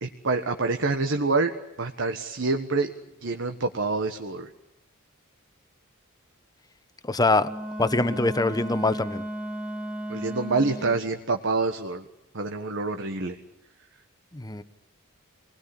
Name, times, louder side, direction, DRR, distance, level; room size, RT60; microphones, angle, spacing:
voice 1, 0.0-1.5 1.8-2.9 3.2-4.5 10.1-12.0 12.3-13.4, right 3 dB, 60° right, 5 dB, 1.5 m, -26 dB
voice 2, 7.0-7.5 7.8-9.2 14.3-14.6, left 2 dB, 20° left, 12 dB, 1.1 m, -23 dB
Wind instrument woodwind instrument, 7.4-11.0, equal, 5° right, 2.0 m, -34 dB
27.0 x 20.5 x 10.0 m, 0.83 s
head